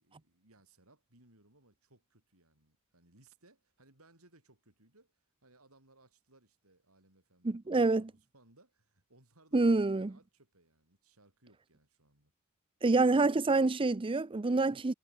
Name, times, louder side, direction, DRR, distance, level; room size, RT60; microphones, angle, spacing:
voice 1, 0.0-12.3, right 2 dB, 70° right, 7.1 m, -65 dB
voice 2, 7.4-8.0 9.5-10.1 12.8-14.9, right 3 dB, 25° right, 0.5 m, -27 dB
head